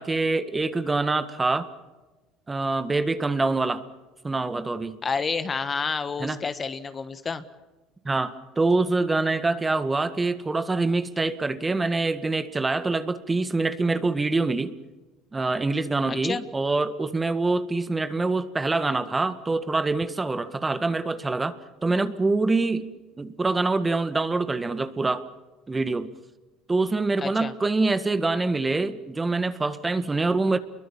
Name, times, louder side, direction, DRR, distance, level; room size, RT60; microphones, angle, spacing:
voice 1, 0.0-1.7 2.5-3.8 4.2-5.0 6.2-6.4 8.0-14.7 15.3-21.6 21.8-22.9 23.2-25.3 25.7-26.1 26.7-30.6, right 3 dB, 20° right, 11 dB, 1.8 m, -25 dB
voice 2, 5.0-7.4 16.1-16.4 27.2-27.5, left 5 dB, 30° left, 11 dB, 1.5 m, -29 dB
28.0 x 22.5 x 7.3 m, 1.2 s
supercardioid pair, 90°, 0 cm